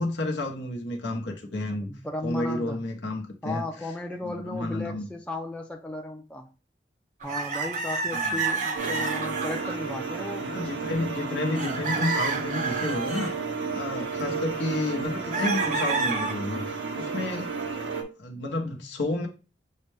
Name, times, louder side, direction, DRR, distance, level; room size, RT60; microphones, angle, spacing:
voice 1, 0.0-1.9 2.2-3.6 4.2-5.1 8.1-8.4 10.4-13.3 13.7-17.5 18.2-19.3, left 2 dB, 75° left, 0.8 m, -31 dB
voice 2, 1.9-2.8 3.4-6.5 7.2-10.5 14.3-14.5, left 2 dB, 5° left, 0.4 m, -35 dB
sound 1, 7.2-9.8 10.2-10.6 11.1-11.2 11.6-13.3 15.3-16.3, right 4 dB, 45° right, 0.6 m, -29 dB
sound 2, 8.8-18.0, right 4 dB, 90° right, 0.7 m, -32 dB
6.4 x 2.2 x 3.2 m
head